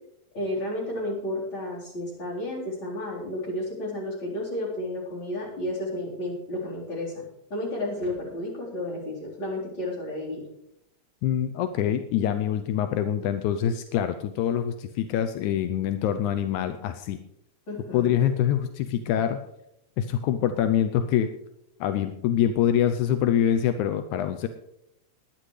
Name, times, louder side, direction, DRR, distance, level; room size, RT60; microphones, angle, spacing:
voice 1, 0.3-7.2 7.5-10.4 17.7-18.2, left 1 dB, 40° left, -5 dB, 4.7 m, -32 dB
voice 2, 11.2-17.2 17.9-19.4 20.0-21.3 21.8-24.5, left 10 dB, 85° left, 9 dB, 2.0 m, -25 dB
21.0 x 10.0 x 3.3 m, 0.81 s
omnidirectional pair, 3.4 m